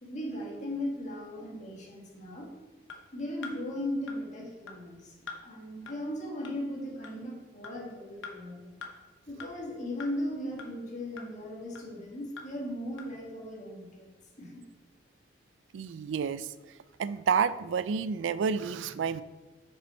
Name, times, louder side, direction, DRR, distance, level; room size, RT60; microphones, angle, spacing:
voice 1, 0.0-2.5 3.1-5.1 5.4-8.7 9.3-14.1 14.4-14.6, left 1 dB, 40° left, -2 dB, 1.8 m, -37 dB
sound 1, 2.9-3.0 3.4-3.6 4.1-4.2 4.7-4.8 5.3-5.4 5.9-6.0 6.4-6.5 7.0-7.1 7.6-7.7 8.2-8.3 8.8-8.9 9.4-9.5 10.0-10.1 10.6-10.7 11.2-11.3 11.7-11.8 12.4-12.5 13.0-13.1, left 4 dB, 85° left, 1.0 m, -42 dB
voice 2, 15.7-16.5 17.0-19.2, right 6 dB, 80° right, 15 dB, 0.4 m, -29 dB
6.8 x 6.1 x 4.3 m, 1.2 s
head